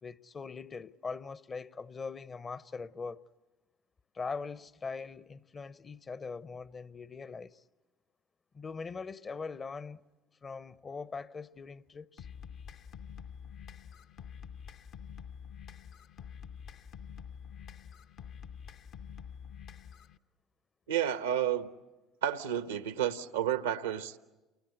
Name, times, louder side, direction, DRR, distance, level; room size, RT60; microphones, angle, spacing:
voice 1, 0.0-3.2 4.1-7.6 8.5-10.0 10.4-12.3, left 4 dB, 30° left, 0.8 m, -41 dB
sound 1, 12.2-20.2, left 7 dB, 55° left, 0.9 m, -47 dB
voice 2, 20.9-21.7 22.2-24.2, right 10 dB, 80° right, 1.0 m, -31 dB
29.5 x 23.5 x 8.4 m
hypercardioid pair, 60°, 0 cm